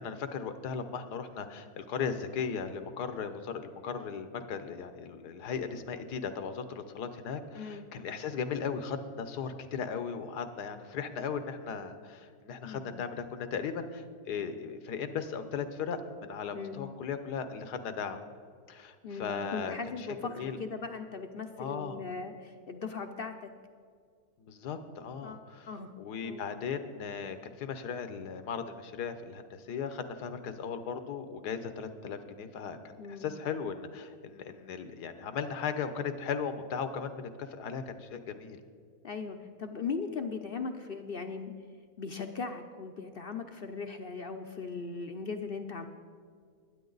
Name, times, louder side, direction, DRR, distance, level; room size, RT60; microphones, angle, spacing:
voice 1, 0.0-18.2 18.7-20.1 20.3-20.6 21.6-22.0 24.4-25.7 26.0-38.6, left 6 dB, 85° left, 10 dB, 1.5 m, -37 dB
voice 2, 7.5-7.9 12.6-12.9 16.5-16.8 19.0-23.5 25.2-25.9 26.2-26.4 33.0-33.3 39.0-41.5 42.0-45.9, left 5 dB, 55° left, 6 dB, 0.6 m, -38 dB
21.5 x 9.4 x 4.0 m, 2.1 s
omnidirectional pair, 1.7 m